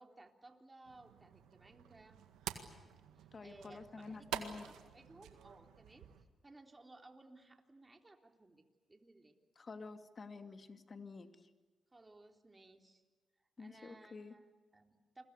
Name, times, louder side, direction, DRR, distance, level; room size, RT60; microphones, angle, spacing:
voice 1, 0.0-2.2 3.2-9.4 11.9-13.0 13.4-15.2, right 2 dB, 25° right, 4 dB, 3.5 m, -60 dB
sound 1, 0.8-6.2, right 10 dB, 90° right, 1.8 m, -48 dB
voice 2, 3.3-4.6 9.6-11.5 13.6-14.3, left 4 dB, 45° left, 8 dB, 2.4 m, -49 dB
28.5 x 22.5 x 8.3 m, 1.3 s
supercardioid pair, 50°, 0 cm